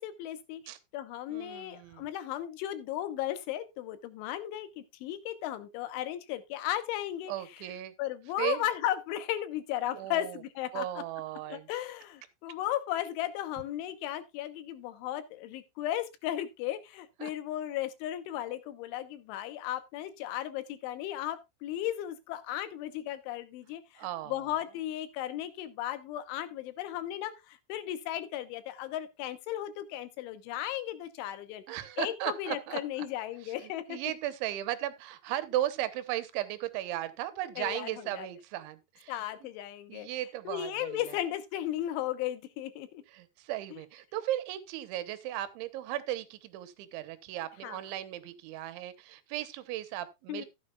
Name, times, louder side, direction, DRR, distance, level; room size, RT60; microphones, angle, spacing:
voice 1, 0.0-0.6 0.9-7.7 8.0-10.9 11.4-31.6 32.0-34.0 37.6-38.3 39.1-40.1 40.4-43.0 43.7-43.8 47.6-47.8 50.3-50.5, left 12 dB, 85° left, 3.4 m, -35 dB
voice 2, 1.3-2.1 7.3-7.9 8.4-8.6 9.9-10.4 10.7-11.7 17.2-17.3 24.0-24.5 31.7-32.8 33.4-33.5 33.9-39.2 39.9-41.0 43.1-50.5, right 13 dB, 85° right, 3.3 m, -36 dB
14.5 x 9.2 x 2.4 m
omnidirectional pair, 5.4 m